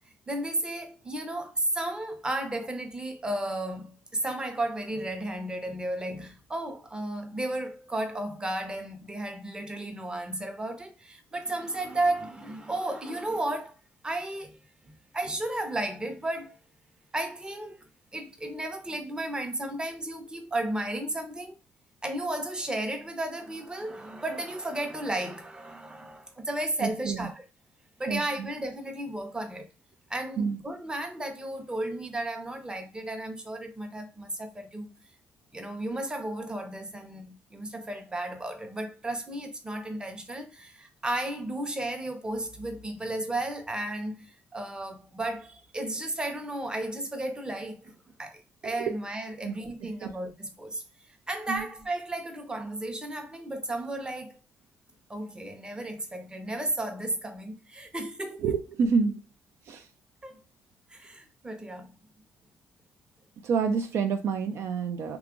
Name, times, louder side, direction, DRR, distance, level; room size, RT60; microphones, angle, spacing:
voice 1, 0.3-13.8 14.0-14.6 15.1-16.6 17.1-21.6 22.0-27.4 28.0-29.7 30.1-34.9 35.5-47.9 48.2-50.8 51.3-54.4 55.1-58.6 60.2-60.4 60.9-61.9, right 1 dB, 15° right, 0.7 m, -33 dB
voice 2, 26.8-27.3 28.1-28.5 30.4-30.6 49.4-49.6 50.0-50.1 51.5-51.6 58.4-59.2 59.7-59.8 63.4-65.2, right 5 dB, 70° right, 0.5 m, -28 dB
2.9 x 2.3 x 3.6 m
cardioid pair, 85°, 5 cm